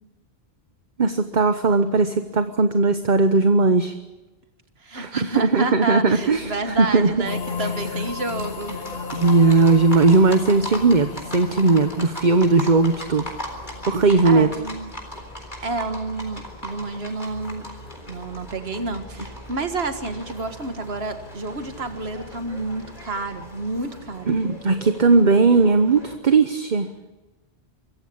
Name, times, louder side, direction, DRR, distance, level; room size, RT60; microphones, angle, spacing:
voice 1, 1.0-3.9 4.9-7.1 9.1-13.3 13.9-14.5 24.3-26.9, right 3 dB, 50° right, 9 dB, 1.1 m, -18 dB
voice 2, 4.8-8.8 14.2-14.9 15.6-17.7 18.1-24.4, right 2 dB, 75° right, 7 dB, 2.0 m, -29 dB
Livestock farm animals working animals, 6.2-26.1, equal, 50° left, 4.0 m, -38 dB
sound 1, 7.3-15.0, left 5 dB, 80° left, 1.6 m, -35 dB
24.5 x 15.0 x 8.7 m, 1.1 s
omnidirectional pair, 1.0 m